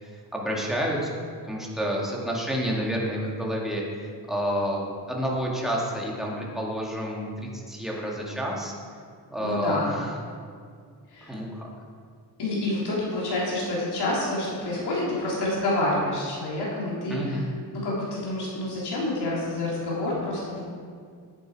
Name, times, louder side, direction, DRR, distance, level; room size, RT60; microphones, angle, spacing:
voice 1, 0.3-1.2 1.5-3.8 4.3-8.7 9.3-10.2 11.2-11.7 17.1-17.5, equal, ahead, -3 dB, 2.2 m, -29 dB
voice 2, 9.4-9.9 11.1-11.3 12.4-17.4 17.8-20.6, left 1 dB, 70° left, -6 dB, 3.3 m, -28 dB
10.5 x 9.8 x 4.8 m, 2.1 s
cardioid pair, 120°, 41 cm